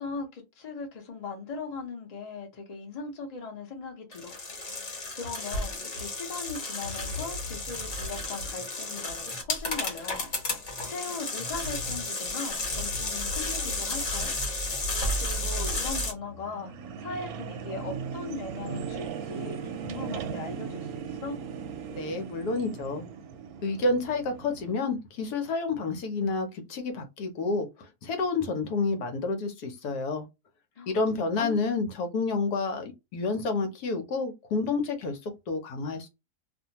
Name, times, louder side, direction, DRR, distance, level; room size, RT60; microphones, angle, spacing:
voice 1, 0.0-4.4 4.7-10.3 10.9-14.3 14.7-14.9 15.2-16.7 17.0-21.4 30.8-31.6, left 4 dB, 35° left, 0.7 m, -39 dB
sound 1, 4.1-16.1, left 2 dB, 50° left, 1.3 m, -32 dB
sound 2, 15.0-24.7, right 6 dB, 70° right, 1.0 m, -38 dB
voice 2, 22.0-23.0 23.6-30.2 30.9-36.1, left 3 dB, 75° left, 1.2 m, -29 dB
2.6 x 2.4 x 2.8 m
omnidirectional pair, 1.7 m